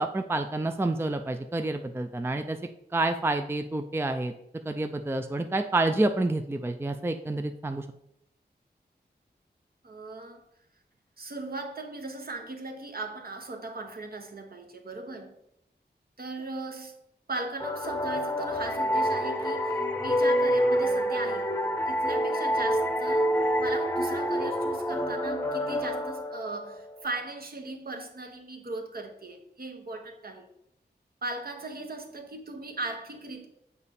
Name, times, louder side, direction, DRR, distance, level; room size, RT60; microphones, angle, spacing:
voice 1, 0.0-2.6 2.9-4.3 4.7-7.9, right 2 dB, 15° right, 0.4 m, -28 dB
voice 2, 9.8-10.4 11.2-15.3 16.2-17.0 17.3-21.5 21.9-23.3 23.6-30.5 31.2-33.5, right 2 dB, 60° right, 1.2 m, -38 dB
sound 1, 17.6-27.0, equal, 10° left, 0.8 m, -27 dB
7.1 x 4.8 x 4.2 m
wide cardioid pair, 100°, 18 cm